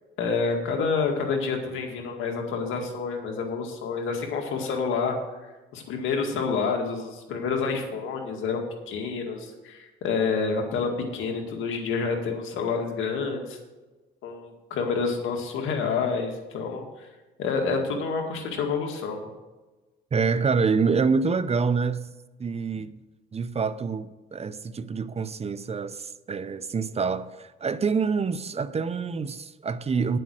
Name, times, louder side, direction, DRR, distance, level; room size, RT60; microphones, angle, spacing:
voice 1, 0.2-5.2 5.4-13.6 14.2-17.1 17.4-19.2, left 5 dB, 85° left, 2.0 m, -28 dB
voice 2, 20.1-22.1 22.4-22.9 23.3-30.2, right 5 dB, 30° right, 0.6 m, -26 dB
9.7 x 7.7 x 6.4 m
cardioid pair, 90°, 20 cm